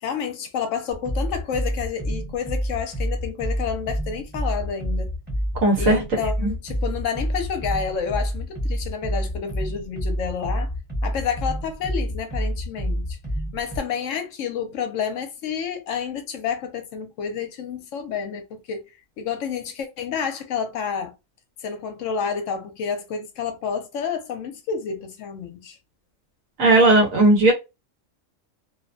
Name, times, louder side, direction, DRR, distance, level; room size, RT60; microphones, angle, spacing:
voice 1, 0.0-5.1 5.8-10.7 11.0-13.2 13.5-18.8 19.2-21.1 21.6-25.8, left 6 dB, 75° left, 0.9 m, -29 dB
sound 1, 0.9-13.8, equal, 10° right, 0.8 m, -28 dB
voice 2, 5.6-6.0 6.4-6.5 26.6-27.5, right 2 dB, 85° right, 1.3 m, -16 dB
2.8 x 2.1 x 2.5 m
omnidirectional pair, 1.4 m